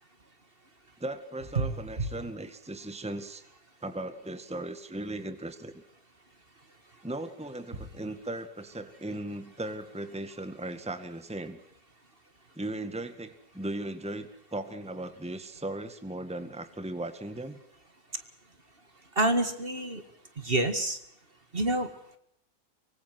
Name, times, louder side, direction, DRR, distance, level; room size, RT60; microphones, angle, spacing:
voice 1, 1.0-3.4 3.8-5.8 7.0-11.6 12.6-17.6, right 1 dB, 5° right, 9 dB, 1.8 m, -37 dB
voice 2, 19.2-20.0 20.4-21.0 21.5-21.9, right 2 dB, 40° right, 9 dB, 2.2 m, -27 dB
24.5 x 24.5 x 6.1 m, 0.70 s
omnidirectional pair, 1.5 m